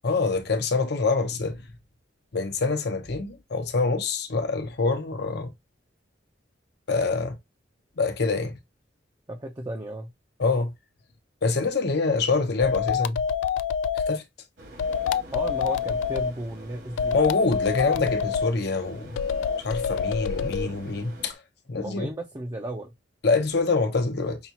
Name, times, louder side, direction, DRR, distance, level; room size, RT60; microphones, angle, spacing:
voice 1, 0.0-1.6 2.3-5.5 6.9-7.3 8.0-8.5 10.4-10.7 11.4-13.2 14.1-14.2 17.1-19.2 19.6-21.4 21.7-22.1 23.2-24.4, left 3 dB, 65° left, 0.8 m, -25 dB
voice 2, 9.3-10.1 15.3-17.2 17.9-18.1 20.6-20.7 21.8-22.9, right 1 dB, 20° right, 0.5 m, -34 dB
sound 1, 12.6-14.2 14.8-16.3 17.0-18.5 19.2-20.7, left 7 dB, 85° left, 0.3 m, -26 dB
sound 2, 14.6-21.3, right 1 dB, 65° right, 1.6 m, -46 dB
5.7 x 2.4 x 2.8 m
head